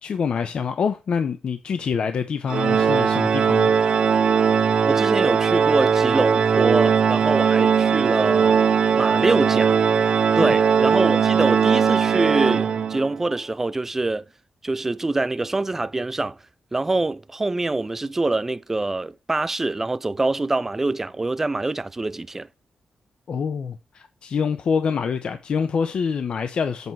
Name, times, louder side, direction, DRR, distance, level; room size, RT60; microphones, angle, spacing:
voice 1, 0.0-4.0 10.4-10.5 23.3-26.9, left 6 dB, 60° left, 0.8 m, -26 dB
Organ, 2.5-13.2, right 6 dB, 55° right, 0.6 m, -19 dB
voice 2, 4.8-8.6 9.0-9.8 10.4-14.2 14.6-16.4 16.7-22.5, right 2 dB, 15° right, 0.5 m, -25 dB
8.1 x 4.6 x 6.1 m
wide cardioid pair, 130°, 2 cm